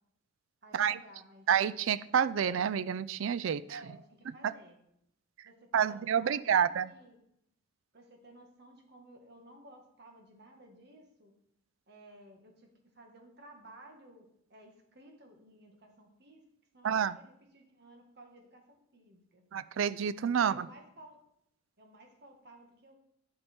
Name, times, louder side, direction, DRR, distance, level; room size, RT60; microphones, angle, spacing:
voice 1, 0.6-1.5 3.7-4.8 5.4-7.2 7.9-11.3 11.9-16.4 16.7-19.4 20.3-21.2 21.8-23.0, right 2 dB, 50° right, 3 dB, 1.6 m, -55 dB
voice 2, 1.5-3.6 5.7-6.9 16.8-17.2 19.5-20.7, right 8 dB, 70° right, 16 dB, 0.4 m, -28 dB
9.5 x 7.7 x 4.4 m, 0.75 s
head